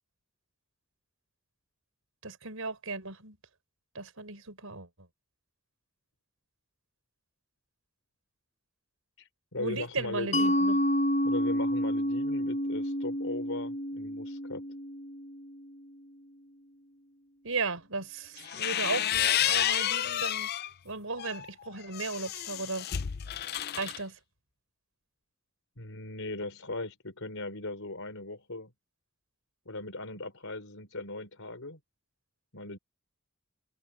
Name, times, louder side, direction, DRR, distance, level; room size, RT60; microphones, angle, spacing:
voice 1, 2.2-3.4 4.0-5.1 9.6-10.8 17.4-20.5 20.8-22.9 23.8-24.2, right 3 dB, 80° right, 5.1 m, -36 dB
voice 2, 9.2-10.4 11.2-14.7 25.8-28.7 29.7-31.8 32.5-32.8, left 2 dB, 75° left, 4.6 m, -39 dB
Mallet percussion, 10.3-15.7, equal, 35° left, 0.9 m, -29 dB
sound 1, 18.4-20.7 21.2-24.0, left 11 dB, 50° left, 0.5 m, -30 dB
head